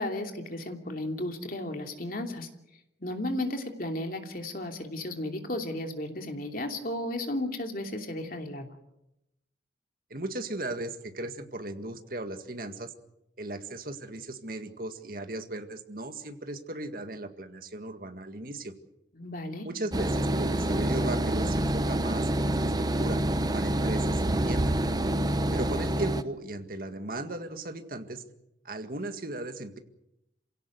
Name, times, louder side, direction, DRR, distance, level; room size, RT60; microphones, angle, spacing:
voice 1, 0.0-2.5 3.0-8.7 19.1-19.7, left 1 dB, 50° left, 4 dB, 2.9 m, -34 dB
voice 2, 10.1-12.9 13.4-18.7 19.6-23.2 23.5-24.7 25.5-28.2 28.7-29.8, right 2 dB, 50° right, 7 dB, 1.9 m, -37 dB
sound 1, 19.9-26.2, right 1 dB, 20° right, 0.9 m, -27 dB
27.5 x 17.0 x 8.0 m, 0.87 s
head